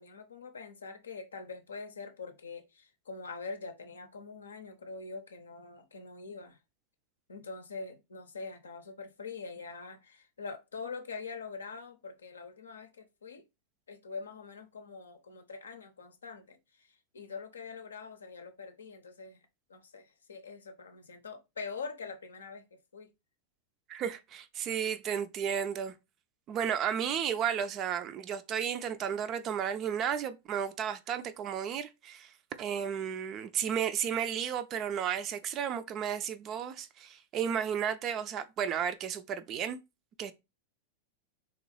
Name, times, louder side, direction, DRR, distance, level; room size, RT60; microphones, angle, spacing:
voice 1, 0.0-6.6 7.3-13.4 13.9-19.4 19.7-23.1, left 4 dB, 70° left, 0.6 m, -44 dB
voice 2, 23.9-25.9 26.5-39.8 40.2-40.3, right 8 dB, 35° right, 0.4 m, -33 dB
3.5 x 2.9 x 3.1 m
figure-of-eight pair, 90°, 0 cm